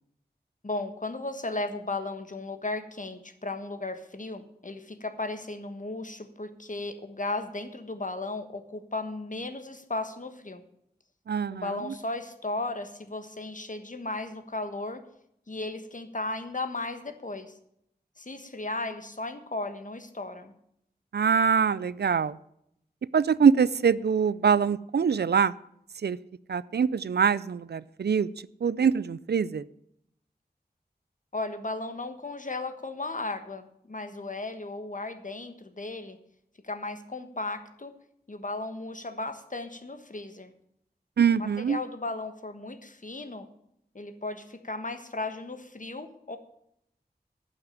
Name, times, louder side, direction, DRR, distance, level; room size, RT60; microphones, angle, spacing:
voice 1, 0.6-10.6 11.5-15.0 15.5-17.5 18.2-20.5 31.3-36.2 36.6-37.9 38.3-40.5 41.4-43.5 43.9-46.4, left 2 dB, 50° left, 8 dB, 1.3 m, -35 dB
voice 2, 11.3-11.7 21.1-22.4 23.1-25.5 26.0-26.2 26.5-28.3 28.6-29.6 41.2-41.8, right 6 dB, 80° right, 19 dB, 0.4 m, -24 dB
11.5 x 6.2 x 9.0 m, 0.75 s
wide cardioid pair, 55°, 17 cm